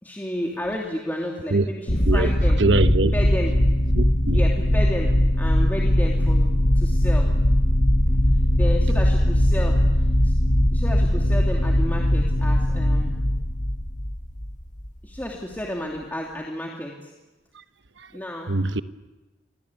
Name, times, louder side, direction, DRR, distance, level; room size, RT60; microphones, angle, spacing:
voice 1, 0.0-2.6 3.1-3.5 4.3-7.3 8.1-8.2 8.5-10.3 10.7-13.2 15.0-17.1 18.1-18.6, left 1 dB, 10° left, 2.7 m, -32 dB
sound 1, 1.9-14.9, left 1 dB, 40° left, 1.7 m, -20 dB
voice 2, 2.6-3.1 3.9-4.4 17.5-17.6 18.0-18.1 18.5-18.8, right 2 dB, 70° right, 1.1 m, -22 dB
29.0 x 24.0 x 8.3 m
head